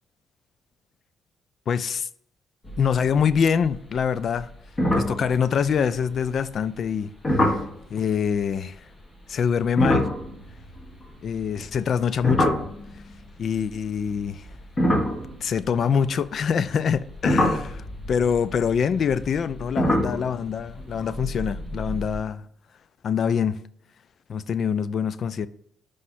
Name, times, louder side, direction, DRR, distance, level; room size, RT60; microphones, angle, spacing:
voice 1, 1.7-2.1 2.8-4.5 4.9-7.6 7.9-8.8 9.3-10.1 11.2-12.6 13.4-14.5 15.4-22.4 23.0-23.6 24.3-25.5, left 7 dB, 55° left, 0.3 m, -25 dB
sound 1, 2.6-3.3 3.6-4.0 4.3-4.4 4.8-6.1 7.2-7.7 9.6-13.2 14.0-16.2 16.8-22.2, left 1 dB, 30° left, 1.8 m, -26 dB
5.5 x 4.9 x 4.2 m
cardioid pair, 90°, 0 cm